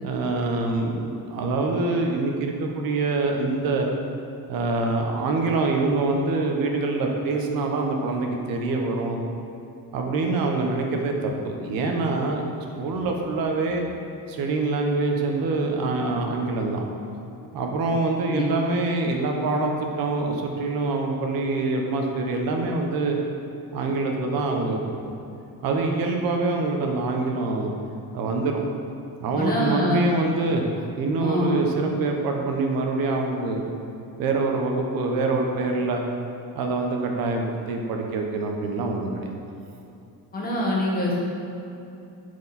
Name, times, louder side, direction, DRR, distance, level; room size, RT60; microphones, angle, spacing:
voice 1, 0.0-3.9 4.5-9.2 9.9-12.4 12.8-13.8 14.3-16.8 17.5-23.2 23.7-25.1 25.6-27.7 28.1-28.6 29.2-33.6 34.2-36.0 36.5-39.3, right 3 dB, 70° right, 2 dB, 1.1 m, -25 dB
voice 2, 29.4-30.0 31.2-31.5 40.3-41.2, left 1 dB, 25° left, -4 dB, 1.4 m, -25 dB
11.0 x 4.8 x 4.2 m, 2.8 s
cardioid pair, 175°, 37 cm